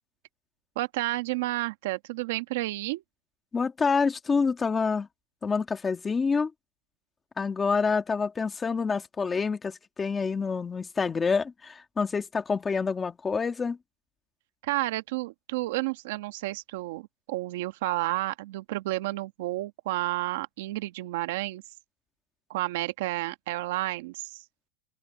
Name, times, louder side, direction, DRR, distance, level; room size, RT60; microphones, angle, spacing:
voice 1, 0.7-3.0 14.6-21.6 22.5-24.4, right 18 dB, 50° right, 1.2 m, -31 dB
voice 2, 3.5-5.1 5.4-6.5 7.4-13.8, left 5 dB, 10° left, 1.5 m, -27 dB
supercardioid pair, 170°, 0 cm